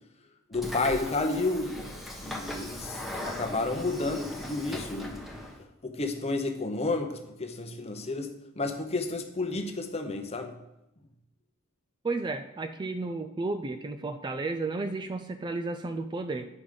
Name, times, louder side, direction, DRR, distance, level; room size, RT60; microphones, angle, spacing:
voice 1, 0.5-1.9 2.2-3.0 3.3-5.2 5.8-10.5, left 3 dB, 30° left, 5 dB, 0.9 m, -31 dB
Train / Sliding door, 0.5-5.6, left 1 dB, ahead, 1.0 m, -39 dB
voice 2, 12.0-16.5, right 3 dB, 20° right, 8 dB, 0.3 m, -33 dB
9.5 x 5.2 x 5.1 m, 0.90 s
head